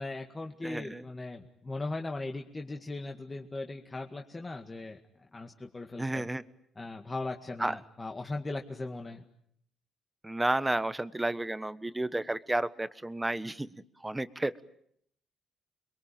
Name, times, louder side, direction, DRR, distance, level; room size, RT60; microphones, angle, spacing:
voice 1, 0.0-5.0 5.3-6.3 6.8-9.2, left 2 dB, 25° left, 3 dB, 2.1 m, -38 dB
voice 2, 0.6-1.0 6.0-6.4 7.6-7.7 10.2-13.7 14.0-14.6, right 2 dB, 10° right, 14 dB, 1.3 m, -31 dB
29.5 x 22.5 x 9.0 m, 0.70 s
cardioid pair, 90°, 0 cm